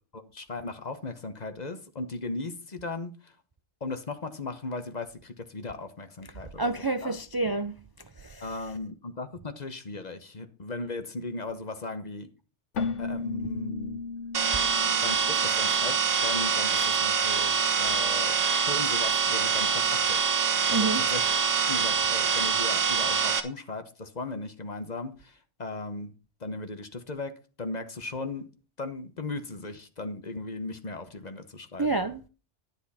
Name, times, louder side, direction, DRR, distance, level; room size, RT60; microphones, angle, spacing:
voice 1, 0.1-3.3 3.8-6.8 7.0-7.2 8.4-12.3 13.0-14.0 15.0-20.2 20.7-21.3 21.7-26.1 26.4-27.3 27.6-28.5 28.8-31.9, left 3 dB, 35° left, 1.1 m, -37 dB
voice 2, 6.6-7.8 8.3-8.4 20.7-21.0 31.8-32.3, right 3 dB, 30° right, 0.4 m, -28 dB
Keyboard (musical), 12.7-16.4, left 4 dB, 75° left, 1.3 m, -35 dB
sound 1, 14.3-23.4, right 6 dB, 90° right, 1.6 m, -25 dB
11.0 x 10.0 x 4.2 m
omnidirectional pair, 1.2 m